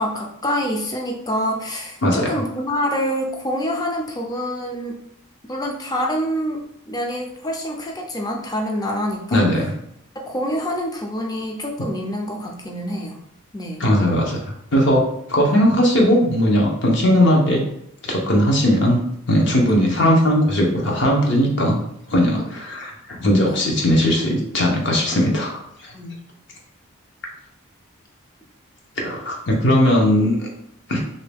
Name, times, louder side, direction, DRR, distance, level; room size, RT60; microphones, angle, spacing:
voice 1, 0.0-5.0 5.5-6.6 6.9-9.4 10.2-13.2 13.5-13.8 15.5-15.6 19.6-20.0 23.5-23.6 25.9-26.2, equal, 15° left, 1 dB, 0.4 m, -26 dB
voice 2, 2.0-2.3 9.3-9.7 13.8-14.4 14.7-15.0 15.3-17.6 18.0-19.0 19.3-21.7 22.1-25.9 29.0-30.5 30.9-31.0, equal, 55° left, -1 dB, 0.8 m, -18 dB
2.9 x 2.7 x 3.4 m, 0.77 s
head